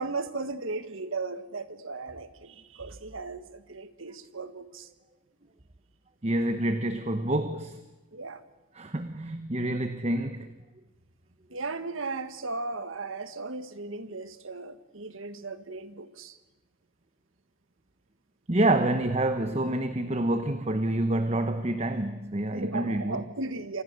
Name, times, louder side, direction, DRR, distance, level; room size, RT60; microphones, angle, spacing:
voice 1, 0.0-4.9 8.1-8.4 11.5-16.4 22.5-23.8, right 3 dB, 75° right, 1.5 m, -36 dB
voice 2, 6.2-7.8 8.7-10.5 18.5-23.2, right 1 dB, 30° right, 1.0 m, -27 dB
28.5 x 25.0 x 6.7 m
head